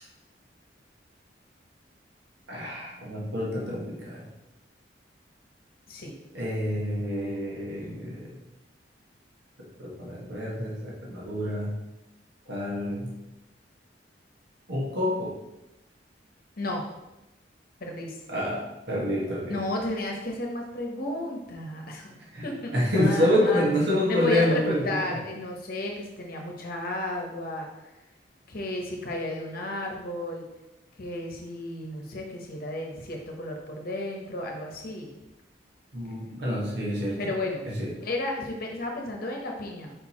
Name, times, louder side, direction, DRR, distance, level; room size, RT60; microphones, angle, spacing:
voice 1, 2.5-4.3 6.3-8.3 9.8-11.7 12.5-13.1 14.7-15.3 18.3-19.6 22.3-22.4 22.7-25.0 35.9-37.2 37.6-37.9, left 1 dB, 70° right, -4 dB, 1.6 m, -27 dB
voice 2, 17.8-18.2 19.5-23.7 24.1-27.7 28.5-30.5 31.0-35.2 37.2-37.7 38.0-39.9, left 1 dB, 55° left, 1 dB, 1.0 m, -33 dB
5.2 x 4.6 x 4.3 m, 0.96 s
head